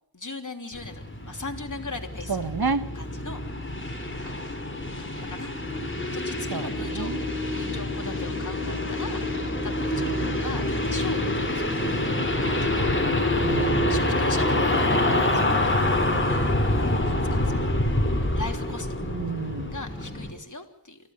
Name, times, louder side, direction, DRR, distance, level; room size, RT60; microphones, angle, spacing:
voice 1, 0.1-2.4 2.7-3.4 4.2-4.4 5.0-5.5 6.1-7.1 7.5-9.2 9.6-11.8 12.4-12.9 13.7-15.8 16.3-16.5 17.0-17.7 18.3-19.0 19.7-21.0, left 3 dB, 45° left, 4 dB, 3.3 m, -39 dB
sound 1, 0.7-20.3, left 1 dB, 30° left, 4.4 m, -26 dB
voice 2, 2.3-2.8 6.5-7.2 13.4-13.9 19.0-19.7, right 4 dB, 60° right, 11 dB, 1.7 m, -30 dB
24.5 x 16.0 x 8.0 m, 0.71 s
wide cardioid pair, 55°, 41 cm